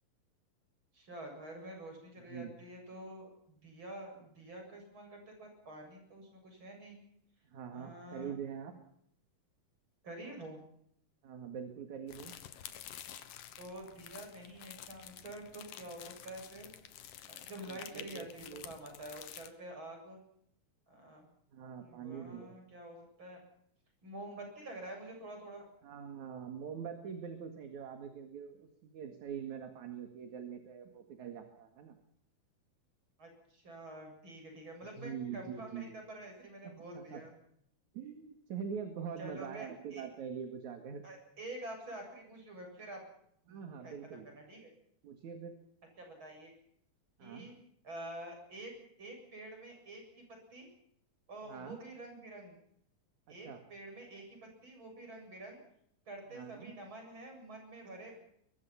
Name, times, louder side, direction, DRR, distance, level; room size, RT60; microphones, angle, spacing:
voice 1, 0.9-7.0 7.7-8.3 10.0-10.6 13.6-16.7 17.3-20.2 20.9-21.3 21.8-23.4 24.0-25.6 33.2-37.3 39.2-40.1 41.0-43.0 43.4-44.7 46.0-46.5 47.2-47.5 47.8-48.7 49.0-50.7 51.3-52.6 53.3-55.6 56.1-58.1, right 1 dB, 30° right, 3 dB, 8.2 m, -48 dB
voice 2, 7.5-8.8 11.2-12.3 17.7-18.7 21.5-22.6 25.8-32.0 35.0-36.0 36.6-37.2 37.9-41.0 43.5-44.3 45.0-45.6 47.2-47.5 51.4-51.8 53.3-53.6 56.3-56.7, right 7 dB, 60° right, 5 dB, 3.2 m, -44 dB
sound 1, 12.1-19.5, left 11 dB, 70° left, 2.8 m, -50 dB
24.0 x 22.5 x 5.9 m, 0.70 s
omnidirectional pair, 4.1 m